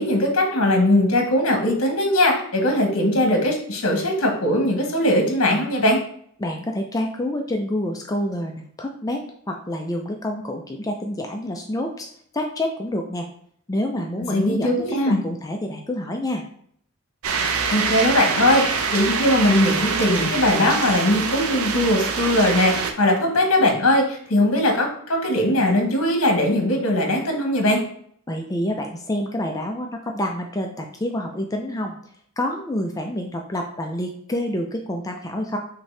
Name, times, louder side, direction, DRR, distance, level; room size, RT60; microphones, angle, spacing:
voice 1, 0.0-6.0 14.3-15.2 17.7-27.8, left 1 dB, 70° left, 3 dB, 1.1 m, -20 dB
voice 2, 6.4-12.1 12.3-13.3 13.7-16.4 28.3-32.0 32.4-35.6, left 1 dB, 15° left, 2 dB, 0.4 m, -28 dB
sound 1, 17.2-22.9, right 5 dB, 75° right, 0.6 m, -25 dB
5.9 x 2.8 x 3.2 m, 0.64 s
head